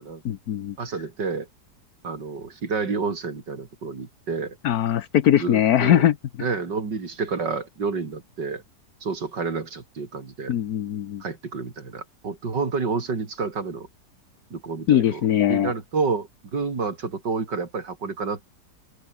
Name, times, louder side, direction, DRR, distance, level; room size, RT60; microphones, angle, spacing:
voice 1, 0.2-0.7 4.6-6.1 10.5-11.2 14.9-15.7, left 10 dB, 65° left, 1.3 m, -20 dB
voice 2, 0.8-1.5 2.0-4.6 5.4-6.0 6.4-8.6 9.0-10.5 11.2-13.9 14.5-15.2 15.5-18.5, right 4 dB, 85° right, 3.8 m, -29 dB
open air
omnidirectional pair, 1.8 m